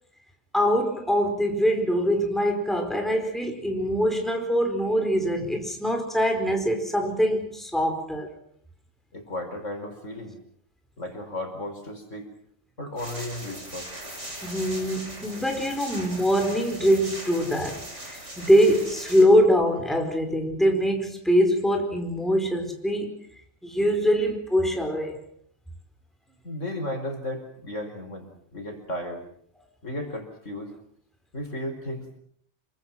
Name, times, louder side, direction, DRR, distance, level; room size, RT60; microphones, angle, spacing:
voice 1, 0.5-8.3 14.4-23.2 23.6-25.2, equal, ahead, 4.7 m, -23 dB
voice 2, 9.1-10.4 11.0-12.3 12.8-13.9 26.4-29.2 29.8-30.7 31.3-32.2, left 1 dB, 65° left, 5.2 m, -34 dB
sound 1, 13.0-19.2, right 1 dB, 60° right, 6.1 m, -40 dB
28.0 x 24.0 x 6.0 m
omnidirectional pair, 1.4 m